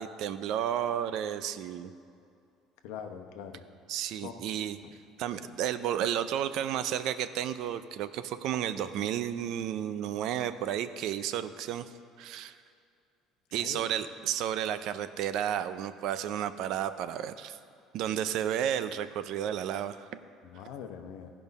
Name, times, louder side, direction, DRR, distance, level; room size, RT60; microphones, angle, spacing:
voice 1, 0.0-1.9 3.9-4.8 5.2-11.9 12.2-12.6 13.5-17.6 17.9-20.2, right 10 dB, 65° right, 12 dB, 0.5 m, -32 dB
voice 2, 2.8-3.6 4.2-4.4 13.5-13.8 20.4-21.3, left 8 dB, 85° left, 6 dB, 0.9 m, -42 dB
14.5 x 5.3 x 5.4 m, 2.5 s
cardioid pair, 140°, 0 cm